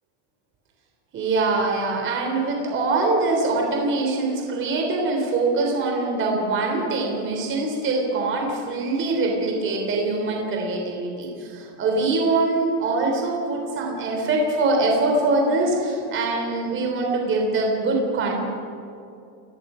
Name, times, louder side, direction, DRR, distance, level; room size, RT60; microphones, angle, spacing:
voice 1, 1.1-18.3, right 3 dB, 25° right, 0 dB, 3.7 m, -23 dB
29.5 x 20.5 x 5.8 m, 2.6 s
supercardioid pair, 180°, 50 cm